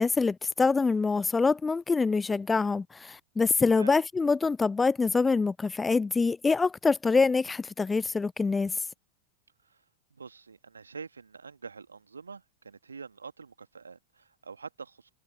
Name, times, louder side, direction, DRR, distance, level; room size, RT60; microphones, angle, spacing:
voice 1, 0.0-8.7, left 4 dB, 10° left, 0.6 m, -25 dB
voice 2, 10.2-15.1, right 5 dB, 75° right, 2.0 m, -45 dB
figure-of-eight pair, 90°, 0 cm